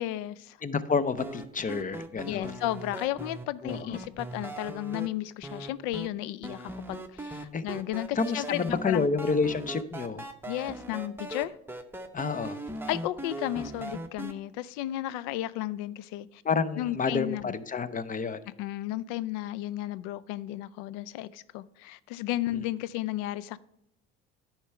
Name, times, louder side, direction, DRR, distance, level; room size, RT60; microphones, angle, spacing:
voice 1, 0.0-0.6 2.2-9.1 10.5-11.5 12.9-16.4 16.8-17.5 18.6-23.6, left 14 dB, 80° left, 19 dB, 0.5 m, -33 dB
voice 2, 0.6-2.6 3.6-4.0 7.5-7.6 8.2-10.3 12.1-12.6 16.4-18.4 22.5-22.6, left 5 dB, 25° left, 15 dB, 0.6 m, -29 dB
sound 1, 1.2-5.1 5.4-6.1 6.4-14.3, right 1 dB, 5° right, 0.9 m, -39 dB
10.0 x 4.4 x 5.7 m, 0.78 s
supercardioid pair, 75°, 30 cm